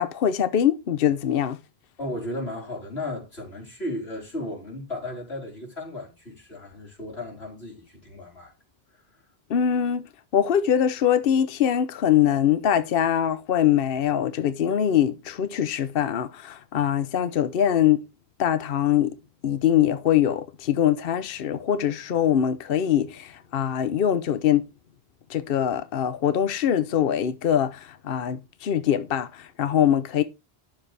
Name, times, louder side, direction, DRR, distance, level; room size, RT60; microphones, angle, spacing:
voice 1, 0.0-1.6 9.5-18.0 18.4-19.1 19.4-24.7 25.3-30.2, left 10 dB, 65° left, 0.9 m, -23 dB
voice 2, 2.0-8.5, left 1 dB, 85° left, 5.0 m, -35 dB
11.5 x 7.3 x 3.3 m
omnidirectional pair, 1.0 m